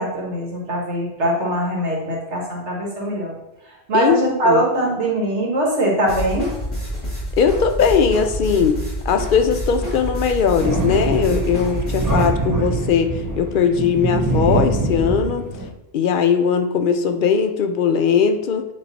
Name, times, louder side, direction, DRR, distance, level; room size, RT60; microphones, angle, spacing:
voice 1, 0.0-3.3 3.9-6.5, right 1 dB, 80° right, -1 dB, 1.7 m, -21 dB
sound 1, 6.1-12.3, equal, 35° left, 2.3 m, -27 dB
voice 2, 7.4-8.8 9.1-15.5 15.9-18.7, left 6 dB, 60° left, 8 dB, 0.6 m, -19 dB
Thunder, 10.6-15.7, right 3 dB, 20° right, 0.6 m, -23 dB
8.6 x 3.1 x 4.0 m, 0.95 s
omnidirectional pair, 1.2 m